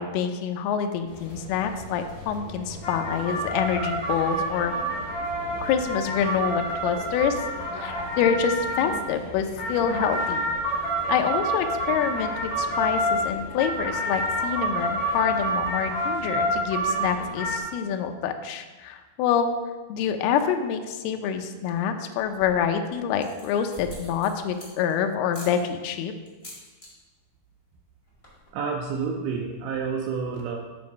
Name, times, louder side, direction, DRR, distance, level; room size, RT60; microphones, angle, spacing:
voice 1, 0.0-4.8 5.6-7.4 7.8-10.4 11.1-19.5 19.9-26.1, left 8 dB, 80° left, 6 dB, 2.6 m, -26 dB
sound 1, 1.1-17.6, right 1 dB, 60° left, 3.1 m, -29 dB
sound 2, 22.2-22.7 23.1-24.9 25.3-25.6 26.3-26.9 27.2-27.5 27.8-27.9 28.1-28.5, equal, 40° left, 0.4 m, -44 dB
voice 2, 28.5-30.6, right 5 dB, 80° right, 0 dB, 2.5 m, -29 dB
8.8 x 4.2 x 5.2 m, 1.2 s
omnidirectional pair, 4.7 m